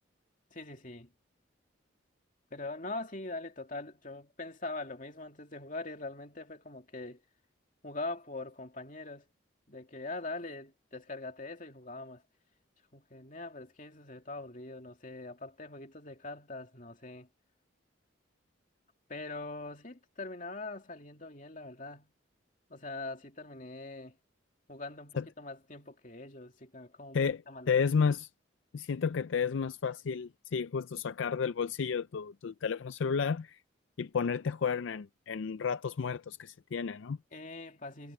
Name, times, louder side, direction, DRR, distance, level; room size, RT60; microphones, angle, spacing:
voice 1, 0.5-1.1 2.5-7.2 7.8-9.3 9.7-12.2 12.9-17.3 19.1-22.1 22.7-24.2 24.7-27.2 27.5-28.1 37.3-38.1, left 2 dB, 40° left, 2.8 m, -42 dB
voice 2, 27.7-28.3 28.7-33.6 34.0-37.2, left 6 dB, 70° left, 0.4 m, -32 dB
head